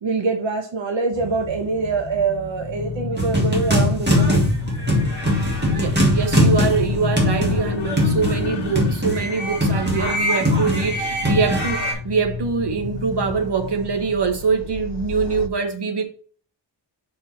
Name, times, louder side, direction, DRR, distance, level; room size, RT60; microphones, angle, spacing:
voice 1, 0.0-4.5, right 4 dB, 80° right, 1.0 m, -24 dB
sound 1, 1.1-15.5, left 5 dB, 70° left, 0.8 m, -31 dB
sound 2, 3.2-11.9, left 1 dB, 25° right, 2.2 m, -20 dB
voice 2, 5.7-16.0, right 5 dB, 65° right, 1.4 m, -24 dB
5.7 x 4.6 x 4.3 m
wide cardioid pair, 170°, 45 cm